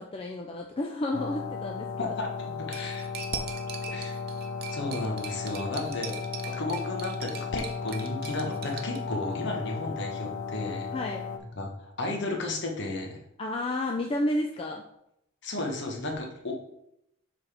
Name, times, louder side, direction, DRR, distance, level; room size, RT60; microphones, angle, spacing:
voice 1, 0.0-2.1 10.9-11.3 13.4-14.8, left 1 dB, 25° left, 1 dB, 0.4 m, -31 dB
sound 1, 1.1-11.4, left 5 dB, 80° left, 0.6 m, -35 dB
voice 2, 2.0-3.1 3.9-4.1 4.7-6.2 6.5-10.9 11.5-13.2 15.4-16.7, left 2 dB, 55° left, 1 dB, 1.2 m, -33 dB
Cutlery silverware, 2.7-9.0, right 7 dB, 50° right, 0.6 m, -41 dB
7.1 x 3.9 x 3.4 m, 0.79 s
head